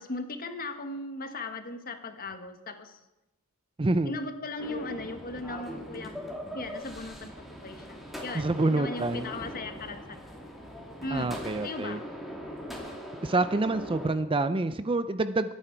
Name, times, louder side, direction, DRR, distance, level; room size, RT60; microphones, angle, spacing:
voice 1, 0.0-3.0 4.0-6.3 6.5-7.3 7.6-10.4 11.0-11.4 11.6-12.1, left 2 dB, 40° left, 7 dB, 1.4 m, -38 dB
voice 2, 3.8-4.1 8.3-9.3 11.1-12.0 13.2-15.5, right 2 dB, 25° right, 12 dB, 0.5 m, -27 dB
sound 1, 4.6-14.1, equal, ahead, 2.4 m, -41 dB
23.5 x 9.9 x 4.5 m, 0.97 s
head